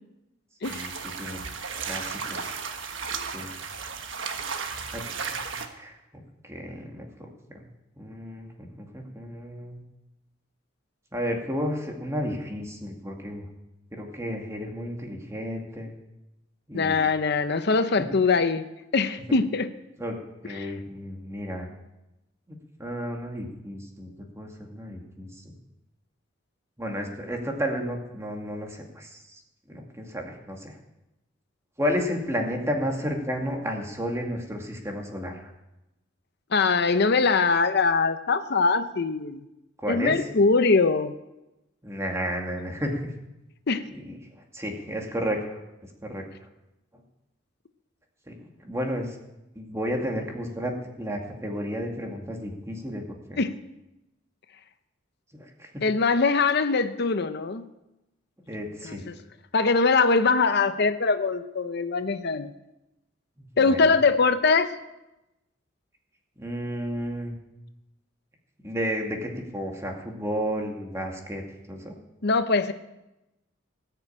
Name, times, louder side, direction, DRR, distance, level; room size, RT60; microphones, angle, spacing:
sound 1, 0.6-5.7, right 5 dB, 75° right, 1.4 m, -34 dB
voice 1, 0.7-1.4 1.9-2.2 3.3-3.5 4.9-5.1 5.8-7.3 8.0-9.8 11.1-13.5 13.9-15.9 16.7-17.0 18.0-18.1 20.0-20.2 20.4-21.7 22.8-24.1 24.4-25.3 26.8-29.4 29.7-30.7 31.8-35.4 39.8-40.2 41.8-43.1 43.9-44.2 44.5-45.6 46.0-46.2 48.3-49.1 49.6-53.0 53.3-53.4 55.3-55.8 58.5-59.0 63.4-64.0 66.4-67.4 68.6-71.4 71.7-71.9, equal, 15° right, 1 dB, 2.2 m, -32 dB
voice 2, 16.7-18.7 18.9-19.7 20.5-20.7 36.5-39.4 39.9-41.1 43.7-43.8 53.4-53.5 55.8-57.6 58.8-59.2 59.5-62.5 63.6-64.8 72.2-72.7, left 4 dB, 60° left, 10 dB, 0.7 m, -22 dB
18.5 x 6.8 x 8.7 m, 0.95 s
head